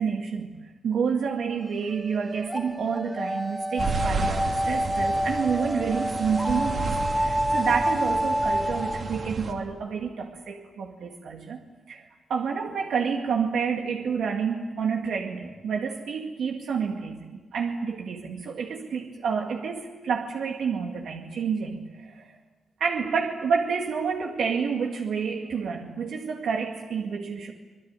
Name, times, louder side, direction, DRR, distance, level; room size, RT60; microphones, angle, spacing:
voice 1, 0.0-11.6 11.9-22.3 22.8-27.5, right 6 dB, 75° right, 2 dB, 2.0 m, -29 dB
sound 1, 1.7-9.3, equal, ahead, 0.8 m, -28 dB
sound 2, 3.8-9.5, right 3 dB, 45° right, 2.7 m, -32 dB
26.0 x 22.0 x 9.7 m, 1.3 s
wide cardioid pair, 165°, 0 cm